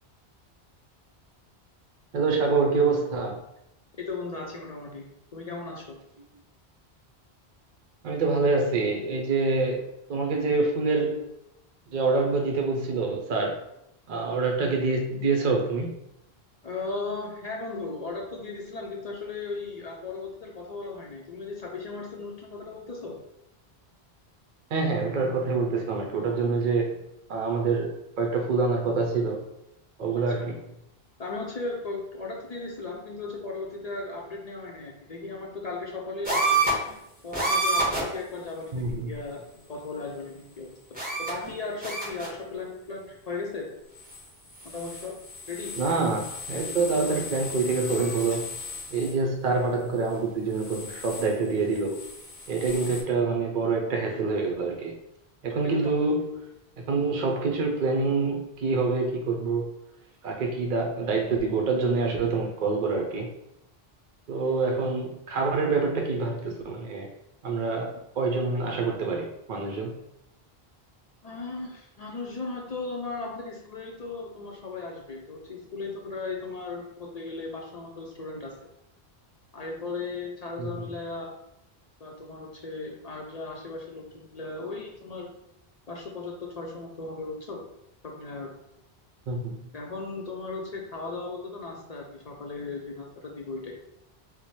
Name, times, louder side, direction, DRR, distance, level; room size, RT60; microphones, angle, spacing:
voice 1, 2.1-3.4 8.0-9.8 10.1-11.3 11.9-13.6 14.1-15.9 24.7-27.0 27.3-29.4 30.0-30.6 38.7-39.1 45.8-48.5 48.9-52.0 52.5-55.0 55.4-56.5 56.8-59.7 60.2-63.3 64.3-67.1 67.4-69.9 80.6-80.7 89.3-89.6, right 4 dB, 60° right, 2 dB, 0.6 m, -26 dB
voice 2, 4.0-5.0 5.3-6.0 16.6-23.2 30.1-30.5 31.2-36.6 37.2-43.7 44.6-45.2 45.5-45.7 55.6-55.9 71.2-78.6 79.5-81.3 82.0-85.3 85.9-87.6 88.0-88.5 89.7-93.8, left 3 dB, 50° left, -1 dB, 0.5 m, -36 dB
sound 1, 36.2-36.9 37.3-38.2 38.8-38.9 40.9-41.5 41.8-42.4 44.0-44.2 44.5-49.1 50.6-51.3 51.7-53.0, right 2 dB, 10° right, 1.0 m, -31 dB
3.0 x 2.1 x 4.1 m, 0.82 s
omnidirectional pair, 1.1 m